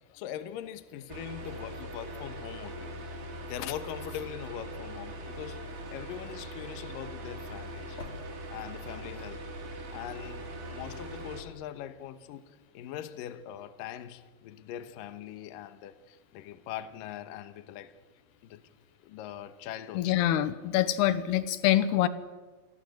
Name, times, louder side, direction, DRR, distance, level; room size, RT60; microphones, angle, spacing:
voice 1, 0.1-3.0 3.5-5.6 5.9-8.0 8.5-9.5 9.9-17.9 18.4-18.6 19.0-20.1, left 11 dB, 70° left, 11 dB, 2.6 m, -41 dB
sound 1, 1.1-11.4, right 1 dB, 60° right, 4.8 m, -41 dB
sound 2, 7.3-12.3, left 4 dB, 50° left, 4.2 m, -54 dB
voice 2, 19.9-22.1, left 12 dB, 85° left, 14 dB, 3.0 m, -25 dB
28.0 x 21.5 x 7.9 m, 1.4 s
omnidirectional pair, 4.5 m